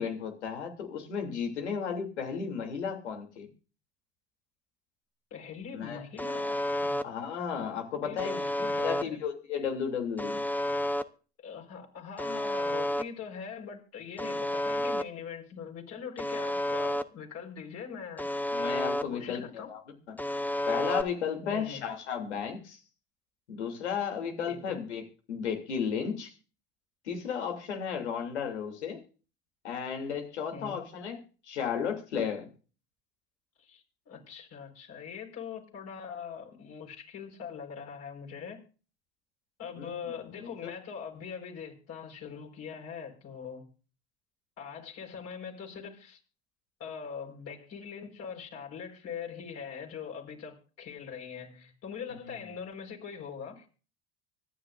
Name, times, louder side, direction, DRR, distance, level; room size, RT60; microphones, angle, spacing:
voice 1, 0.0-3.5 5.7-6.0 7.0-10.4 18.5-19.8 20.1-20.2 20.7-22.8 23.5-26.3 27.0-29.0 29.6-32.5 39.7-40.1 40.4-40.7 52.2-52.3, left 7 dB, 85° left, 3.0 m, -34 dB
voice 2, 5.3-7.0 8.0-9.2 11.4-18.3 19.1-19.7 21.4-21.8 24.5-24.8 30.5-30.8 33.6-38.6 39.6-43.7 44.6-46.2 46.8-53.6, left 7 dB, 50° left, 4.6 m, -42 dB
Alarm, 6.2-7.0 8.2-9.0 10.2-11.0 12.2-13.0 14.2-15.0 16.2-17.0 18.2-19.0 20.2-21.0, left 1 dB, 5° left, 0.8 m, -30 dB
25.0 x 9.7 x 2.6 m
hypercardioid pair, 75°, 33 cm